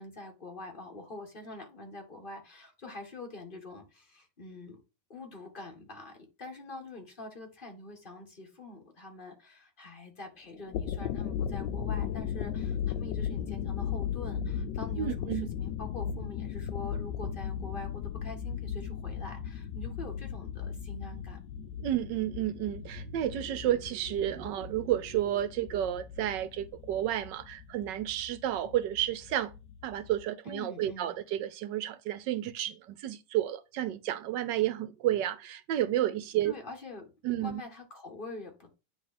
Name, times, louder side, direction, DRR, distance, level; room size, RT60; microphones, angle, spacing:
voice 1, 0.0-4.8 5.1-21.4 30.5-31.1 36.4-37.1 37.4-38.7, left 2 dB, 30° left, 1.7 m, -45 dB
sound 1, 10.5-30.2, left 8 dB, 75° left, 1.2 m, -37 dB
voice 2, 15.0-15.5 21.8-29.5 29.8-36.5 37.2-37.6, right 12 dB, 75° right, 1.3 m, -31 dB
9.5 x 3.2 x 4.1 m
omnidirectional pair, 2.0 m